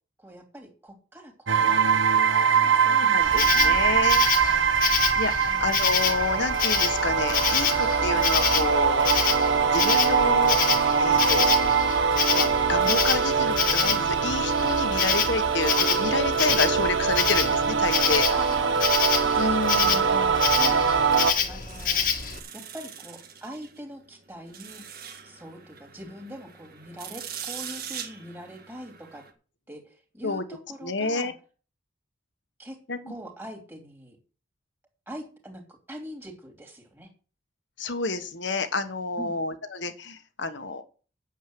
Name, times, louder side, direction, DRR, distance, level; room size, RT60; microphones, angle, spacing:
voice 1, 0.2-1.9 2.4-4.6 5.4-5.7 16.8-16.9 18.3-18.8 19.2-20.1 20.5-22.1 22.5-24.8 25.2-29.2 29.7-31.3 32.6-32.8 33.1-34.2 35.1-37.1 39.2-39.4, equal, 10° right, 2 dB, 2.8 m, -43 dB
sound 1, 1.5-21.3, right 6 dB, 75° right, 1.0 m, -23 dB
voice 2, 2.9-4.2 5.1-9.1 9.7-10.6 11.0-11.7 12.3-18.3 19.3-20.4 30.2-30.4 30.8-31.3 32.9-33.0 37.8-40.8, left 3 dB, 65° left, 9 dB, 1.4 m, -29 dB
Insect, 3.2-22.4, left 7 dB, 45° left, 1.5 m, -27 dB
sound 2, 20.7-29.3, right 8 dB, 50° right, 1.7 m, -42 dB
9.3 x 7.4 x 7.8 m, 0.38 s
head